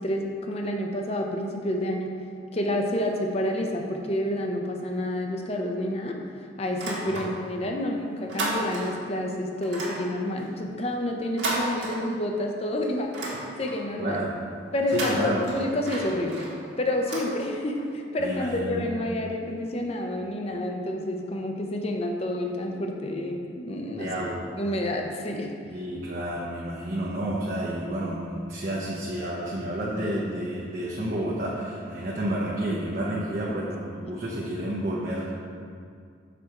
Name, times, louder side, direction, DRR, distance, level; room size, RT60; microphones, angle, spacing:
voice 1, 0.0-2.1 2.5-6.1 6.6-13.1 13.6-14.2 14.7-24.1 24.6-25.5 33.5-33.6 34.1-34.2, left 1 dB, 35° left, 2 dB, 0.7 m, -29 dB
sound 1, 6.7-7.7 8.0-9.1 9.6-12.5 12.8-14.0 14.7-17.9, right 1 dB, 80° right, 1.6 m, -34 dB
voice 2, 14.0-14.3 14.9-15.5 18.2-18.9 23.9-24.5 25.7-35.3, right 1 dB, 45° right, -5 dB, 0.8 m, -30 dB
6.7 x 5.0 x 4.3 m, 2.3 s
head